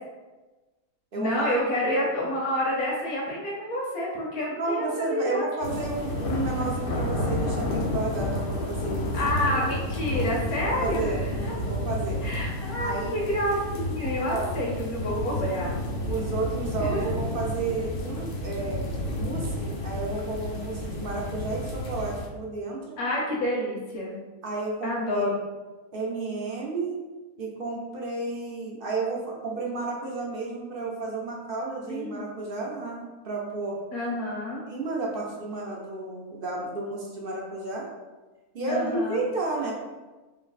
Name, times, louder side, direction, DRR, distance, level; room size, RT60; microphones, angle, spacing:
voice 1, 1.2-5.8 9.1-11.5 12.2-15.8 16.0-16.3 16.8-17.1 23.0-24.2 24.8-25.3 31.8-32.2 33.9-34.6 38.7-39.2, left 1 dB, 80° left, -3 dB, 1.4 m, -29 dB
voice 2, 4.6-9.2 9.5-9.7 10.8-11.3 11.6-12.2 12.8-13.1 14.3-14.5 15.2-15.4 16.1-23.0 24.4-25.2 25.9-27.0 27.4-33.8 34.7-37.9 38.5-39.8, right 3 dB, 50° right, -2 dB, 0.7 m, -32 dB
sound 1, 5.6-22.3, left 1 dB, 60° left, 0.6 m, -31 dB
3.3 x 3.1 x 4.0 m, 1.2 s
omnidirectional pair, 1.5 m